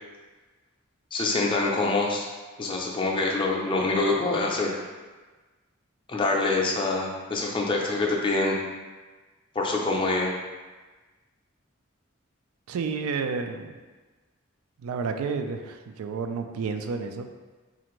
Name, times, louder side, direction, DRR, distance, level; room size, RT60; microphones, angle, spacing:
voice 1, 1.1-2.3 2.6-4.7 6.1-8.6 9.5-10.3, left 3 dB, 25° left, -2 dB, 0.4 m, -25 dB
voice 2, 12.7-13.7 14.8-17.3, right 5 dB, 85° right, 7 dB, 0.3 m, -30 dB
4.2 x 2.5 x 3.0 m, 1.3 s
head